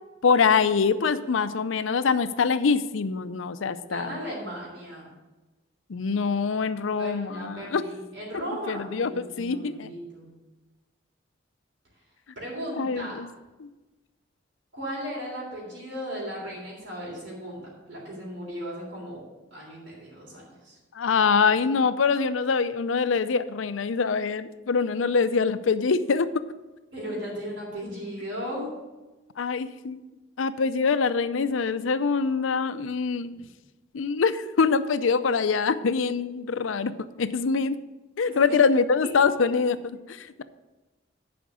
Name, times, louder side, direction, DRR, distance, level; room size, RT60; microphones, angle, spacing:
voice 1, 0.2-4.2 5.9-7.8 8.7-9.9 12.8-13.3 13.6-13.7 20.9-26.4 29.4-30.0 30.4-33.3 33.9-37.8 38.2-40.4, left 5 dB, 90° left, 13 dB, 0.5 m, -24 dB
voice 2, 3.9-5.1 6.9-10.3 12.3-13.2 14.7-19.2 19.5-20.8 26.9-28.7 33.3-33.4 38.2-38.6 39.0-39.1, equal, 70° right, -4 dB, 3.4 m, -36 dB
10.5 x 5.1 x 6.3 m, 1.1 s
head